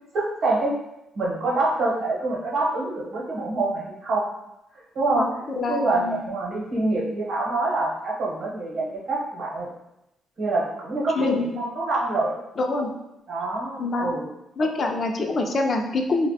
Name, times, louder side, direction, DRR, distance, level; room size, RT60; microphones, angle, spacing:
voice 1, 0.1-0.7 1.1-4.3 4.7-5.3 5.7-9.7 10.4-12.4 13.3-14.3, right 2 dB, 65° right, -4 dB, 0.8 m, -26 dB
voice 2, 5.6-6.2 11.1-11.5 12.6-12.9 13.8-14.2 14.6-16.3, left 2 dB, 45° left, 3 dB, 0.3 m, -25 dB
2.4 x 2.1 x 2.7 m, 0.88 s
cardioid pair, 90°, 0 cm